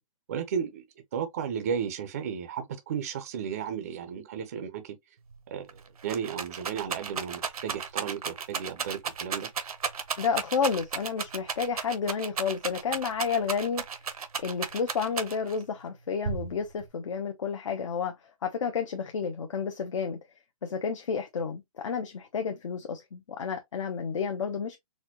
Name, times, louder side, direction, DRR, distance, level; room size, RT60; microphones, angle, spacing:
voice 1, 0.3-0.8 1.1-5.0 5.5-9.5, right 7 dB, 25° right, 0.5 m, -34 dB
Rattle, 5.3-5.4 5.7-15.6 16.2-16.9, right 6 dB, 85° right, 0.8 m, -34 dB
voice 2, 10.2-13.8 14.4-18.1 18.4-20.2 20.6-24.8, left 6 dB, 60° left, 0.7 m, -31 dB
4.2 x 2.2 x 2.8 m
hypercardioid pair, 165°, 19 cm